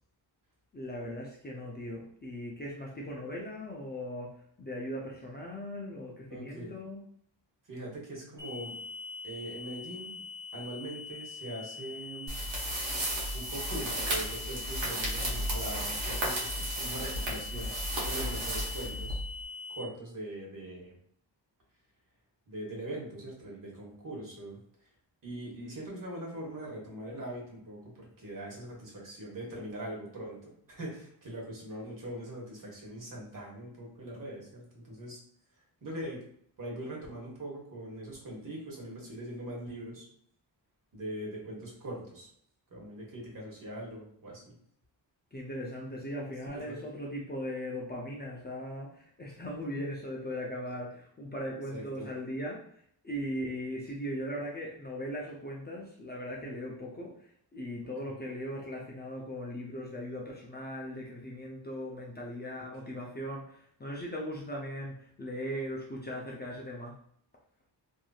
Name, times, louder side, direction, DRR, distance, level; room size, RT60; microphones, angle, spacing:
voice 1, 0.7-7.0 45.3-52.7 53.0-67.0, equal, 25° left, -3 dB, 0.5 m, -39 dB
voice 2, 6.3-6.7 7.7-8.8 9.2-10.2 10.5-12.4 13.3-19.2 19.7-20.9 22.5-24.6 25.2-35.2 35.8-36.2 36.6-40.1 40.9-42.3 42.7-44.5 46.5-46.8 50.7-50.8 51.7-52.1 56.4-56.5 58.0-58.2 62.8-63.0, right 1 dB, 45° right, -3 dB, 1.3 m, -41 dB
sound 1, 8.4-19.8, left 4 dB, 10° right, 1.1 m, -43 dB
sound 2, 12.3-19.4, right 1 dB, 75° right, 1.1 m, -34 dB
3.0 x 2.6 x 2.3 m, 0.66 s
wide cardioid pair, 125°, 44 cm